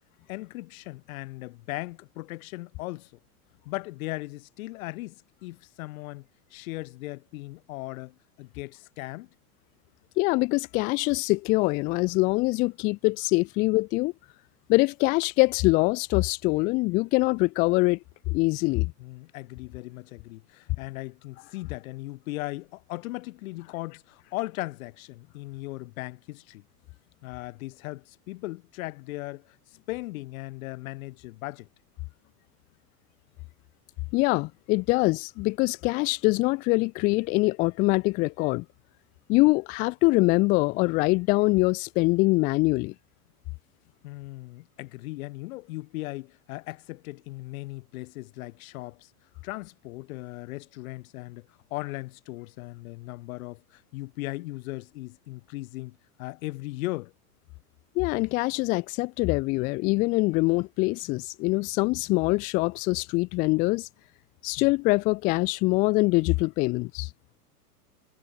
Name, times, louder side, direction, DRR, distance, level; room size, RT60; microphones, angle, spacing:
voice 1, 0.3-3.1 3.6-5.2 5.4-6.2 6.5-9.3 19.0-26.6 27.2-29.4 29.9-31.7 44.0-49.1 49.4-57.1 64.6-64.7, left 20 dB, 60° left, 1.0 m, -38 dB
voice 2, 10.2-14.1 14.7-18.0 18.3-18.9 34.1-38.6 39.3-42.9 58.0-63.9 64.4-67.1, left 24 dB, 20° left, 0.3 m, -24 dB
hypercardioid pair, 120°, 47 cm